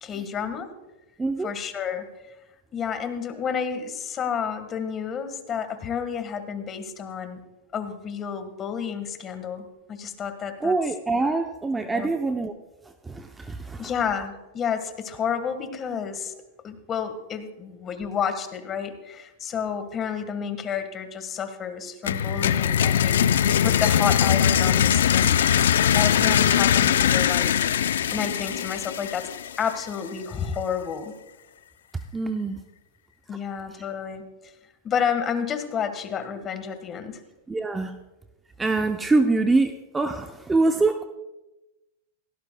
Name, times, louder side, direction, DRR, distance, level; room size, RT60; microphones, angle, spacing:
voice 1, 0.0-0.7 1.4-2.1 2.7-7.4 7.7-10.7 11.8-12.1 13.8-16.3 16.6-25.4 25.9-27.6 28.1-29.3 29.6-31.1 33.3-34.5 34.8-37.2, left 7 dB, 25° left, 9 dB, 1.5 m, -30 dB
voice 2, 1.2-1.5 10.6-12.5 12.8-13.9 32.1-32.6 37.5-38.0 38.6-41.1, right 3 dB, 10° right, 7 dB, 0.6 m, -24 dB
sound 1, 22.0-29.8, left 9 dB, 85° left, 0.5 m, -21 dB
17.5 x 17.0 x 2.2 m, 1.0 s
hypercardioid pair, 130°, 0 cm